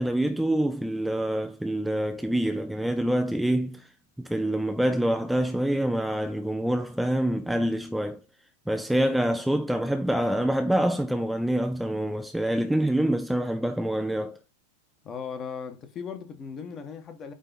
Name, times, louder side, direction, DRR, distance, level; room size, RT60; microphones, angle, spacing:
voice 1, 0.0-3.9 4.2-8.2 8.7-14.4, right 1 dB, ahead, 0.5 m, -26 dB
voice 2, 15.0-17.3, left 6 dB, 30° left, 1.3 m, -37 dB
8.8 x 3.3 x 4.2 m
figure-of-eight pair, 90°, 0 cm